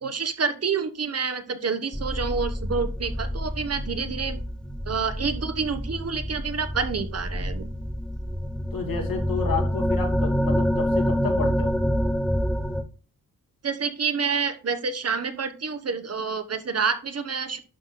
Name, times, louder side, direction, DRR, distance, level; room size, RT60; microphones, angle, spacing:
voice 1, 0.0-4.4 4.9-7.7 13.6-17.6, right 5 dB, 45° right, 9 dB, 1.3 m, -28 dB
sound 1, 1.9-12.8, equal, ahead, 1.0 m, -27 dB
voice 2, 8.7-11.8, left 5 dB, 70° left, 3 dB, 2.8 m, -31 dB
11.5 x 4.1 x 4.2 m, 0.37 s
cardioid pair, 100°, 35 cm